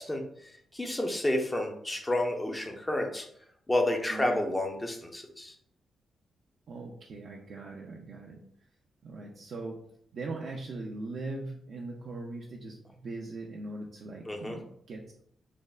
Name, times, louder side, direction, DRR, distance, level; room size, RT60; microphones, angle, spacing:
voice 1, 0.0-3.3 3.7-5.6 14.3-14.6, left 1 dB, 15° left, 3 dB, 0.5 m, -30 dB
voice 2, 4.1-4.4 6.7-8.4 9.0-9.8 10.1-15.2, right 2 dB, 60° right, -1 dB, 0.4 m, -40 dB
3.3 x 2.1 x 2.3 m, 0.68 s
cardioid pair, 85°, 0 cm